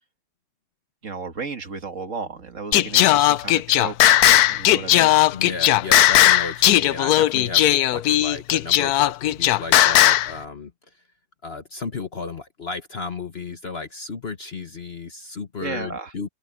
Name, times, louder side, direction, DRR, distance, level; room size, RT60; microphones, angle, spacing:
voice 1, 1.0-5.2 15.6-16.1, right 4 dB, 50° right, 1.9 m, -34 dB
Singing, 2.7-10.3, left 13 dB, 70° left, 1.1 m, -17 dB
voice 2, 5.3-10.7 11.4-16.3, left 4 dB, 40° left, 1.2 m, -33 dB
open air
omnidirectional pair, 1.8 m